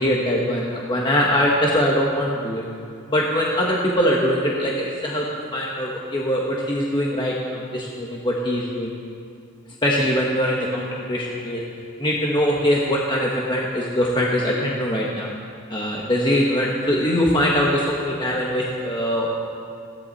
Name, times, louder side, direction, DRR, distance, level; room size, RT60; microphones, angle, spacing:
voice 1, 0.0-2.7 3.1-8.9 9.8-11.6 12.0-15.3 15.7-19.3, equal, 20° left, -3 dB, 1.4 m, -22 dB
20.5 x 17.0 x 4.2 m, 2.4 s
head